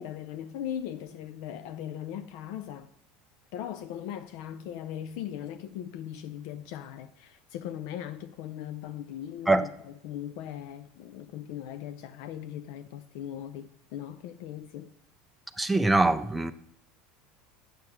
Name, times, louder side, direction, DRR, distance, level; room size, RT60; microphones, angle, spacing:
voice 1, 0.0-2.9 3.5-14.9, left 10 dB, 65° left, 0.4 m, -39 dB
voice 2, 15.6-16.5, right 2 dB, 5° right, 0.5 m, -23 dB
8.0 x 6.6 x 5.8 m
supercardioid pair, 140°, 0 cm